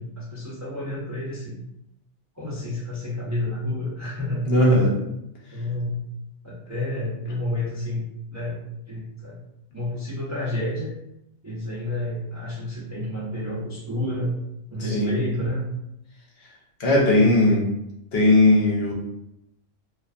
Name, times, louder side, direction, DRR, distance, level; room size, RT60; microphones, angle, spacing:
voice 1, 0.0-1.6 2.4-4.4 5.5-6.0 6.4-8.0 8.3-9.4 9.7-10.9 11.4-14.4 14.7-15.7, left 1 dB, 30° right, -7 dB, 0.3 m, -30 dB
voice 2, 4.5-5.0 14.9-15.1 16.8-17.7 18.1-18.9, left 1 dB, 60° left, -3 dB, 0.9 m, -18 dB
2.5 x 2.4 x 2.3 m, 0.83 s
omnidirectional pair, 1.3 m